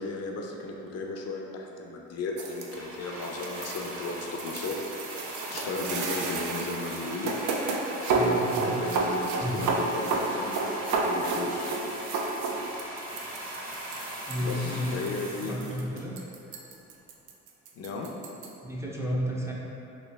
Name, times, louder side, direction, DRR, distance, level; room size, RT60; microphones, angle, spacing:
voice 1, 0.0-4.7 5.5-7.3 8.1-10.6 10.9-11.7 14.4-15.5 17.8-18.1, left 3 dB, 55° left, 0 dB, 0.5 m, -35 dB
sound 1, 2.4-18.5, right 3 dB, 80° right, 0.5 m, -31 dB
sound 2, 2.7-16.4 17.1-17.2, right 1 dB, 45° right, 0.9 m, -40 dB
voice 2, 8.1-8.8 9.4-9.6 14.3-16.2 18.6-19.5, equal, 10° right, -5 dB, 0.4 m, -32 dB
3.0 x 2.6 x 3.3 m, 2.9 s
cardioid pair, 90°, 30 cm